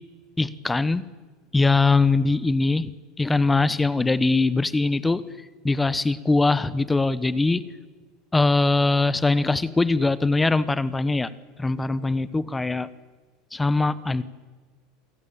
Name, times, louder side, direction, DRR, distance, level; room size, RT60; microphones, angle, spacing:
voice 1, 0.4-1.0 1.5-2.9 3.2-5.2 5.6-7.6 8.3-11.3 11.6-12.9 13.5-14.2, left 3 dB, 10° left, 16 dB, 1.1 m, -21 dB
28.0 x 18.5 x 8.8 m, 1.4 s
supercardioid pair, 125°, 0 cm